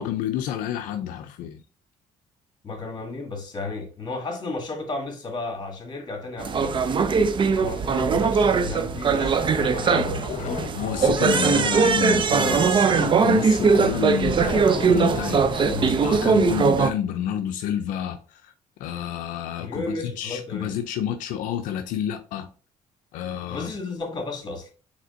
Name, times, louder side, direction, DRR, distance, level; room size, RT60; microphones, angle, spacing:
voice 1, 0.0-1.6 10.7-15.5 15.9-18.5 18.8-22.5 23.1-23.7, left 10 dB, 85° left, 0.4 m, -29 dB
voice 2, 2.6-6.8 7.5-10.7 15.7-16.0 19.6-20.7 23.5-24.7, left 3 dB, 35° left, 1.8 m, -33 dB
sound 1, 6.4-16.9, right 5 dB, 40° right, 0.5 m, -21 dB
sound 2, 9.1-15.8, left 6 dB, 60° left, 0.8 m, -34 dB
4.9 x 3.5 x 2.5 m
cardioid pair, 85°, 13 cm